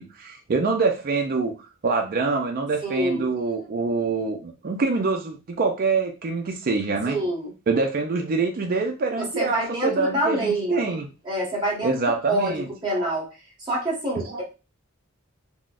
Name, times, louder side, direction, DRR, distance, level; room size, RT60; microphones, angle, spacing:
voice 1, 0.0-1.5 1.8-7.2 7.7-11.1 11.8-12.7 12.9-13.1 14.2-14.4, right 4 dB, 45° right, 0.4 m, -25 dB
voice 2, 2.8-3.3 7.1-7.5 9.2-10.8 11.2-13.3 13.6-14.4, right 1 dB, 20° right, 1.3 m, -26 dB
3.6 x 2.1 x 2.4 m
head